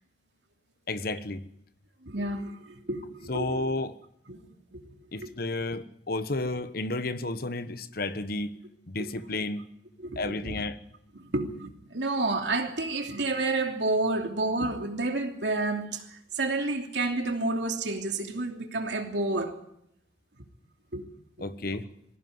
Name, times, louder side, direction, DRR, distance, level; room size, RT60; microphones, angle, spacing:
voice 1, 0.9-1.4 3.3-3.9 5.1-8.6 8.9-9.6 10.2-10.8 21.4-21.8, left 2 dB, 55° left, 1.2 m, -32 dB
voice 2, 2.0-3.7 4.3-4.8 5.2-5.3 9.0-9.1 10.0-10.5 11.2-19.5 20.9-21.1, right 2 dB, 70° right, 2.9 m, -30 dB
21.0 x 16.5 x 9.5 m
head